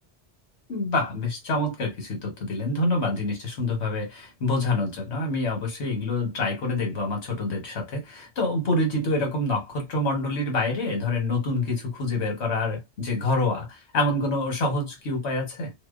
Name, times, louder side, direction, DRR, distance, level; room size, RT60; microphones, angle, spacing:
voice 1, 0.7-15.7, left 2 dB, 90° left, 1.3 m, -26 dB
2.7 x 2.0 x 2.4 m
omnidirectional pair, 1.1 m